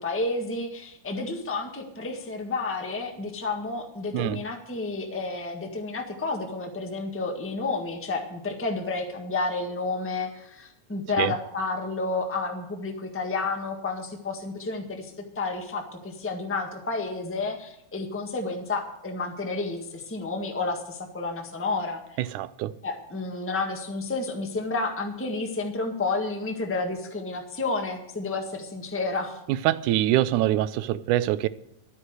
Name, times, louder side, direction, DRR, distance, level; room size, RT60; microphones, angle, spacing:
voice 1, 0.0-22.0 22.8-29.4, left 3 dB, 10° left, 0.6 m, -31 dB
voice 2, 22.3-22.7 29.5-31.5, right 14 dB, 85° right, 2.1 m, -24 dB
12.5 x 9.7 x 6.4 m
omnidirectional pair, 3.5 m